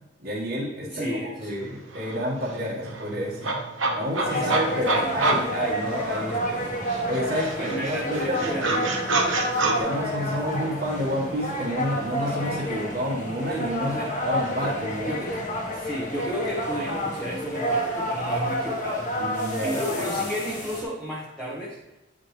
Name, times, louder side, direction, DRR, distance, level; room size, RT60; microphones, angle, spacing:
voice 1, 0.2-3.6 3.9-9.0 9.6-14.0 14.2-15.2 19.2-20.3, equal, 50° right, -8 dB, 1.5 m, -30 dB
voice 2, 0.8-1.5 3.8-3.9 4.3-5.1 7.6-8.9 13.8-14.1 14.6-14.7 15.1-15.5 15.7-19.1 19.4-21.8, equal, 5° left, -8 dB, 1.3 m, -33 dB
sound 1, 1.6-1.7 1.9-6.5 6.9-9.8, right 3 dB, 85° right, 1.2 m, -28 dB
sound 2, 4.2-20.8, equal, 40° left, 1.4 m, -29 dB
9.7 x 5.0 x 3.2 m, 1.0 s
head